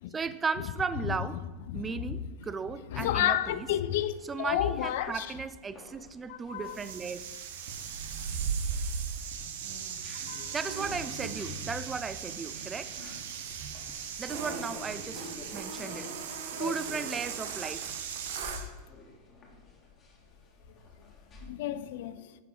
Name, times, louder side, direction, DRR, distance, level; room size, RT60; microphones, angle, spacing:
voice 1, 0.1-1.4 1.7-3.7 4.3-7.3 10.5-13.0 14.2-16.1 16.6-18.0, right 5 dB, 15° right, 0.4 m, -36 dB
voice 2, 1.7-2.2 2.9-5.3 6.3-6.8 10.3-10.5 16.6-16.8 21.4-22.4, left 12 dB, 50° left, 0.5 m, -31 dB
sound 1, 3.2-21.5, left 3 dB, 25° left, 2.0 m, -51 dB
sound 2, 6.6-18.7, right 6 dB, 55° right, 1.0 m, -37 dB
10.5 x 5.9 x 4.4 m
figure-of-eight pair, 90°, 0 cm